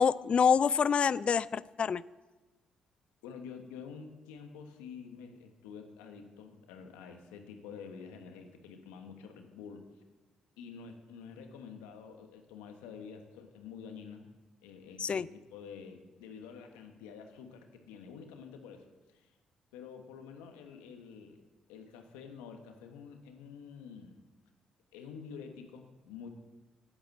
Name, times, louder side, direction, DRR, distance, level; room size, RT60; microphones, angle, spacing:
voice 1, 0.0-2.0 15.0-15.3, left 6 dB, 45° left, 20 dB, 0.3 m, -26 dB
voice 2, 3.2-9.9 10.6-14.3 14.6-19.3 19.7-21.4 21.7-24.2 24.9-26.3, left 6 dB, 90° left, 6 dB, 1.2 m, -48 dB
9.0 x 8.8 x 7.6 m, 1.2 s
hypercardioid pair, 50°, 2 cm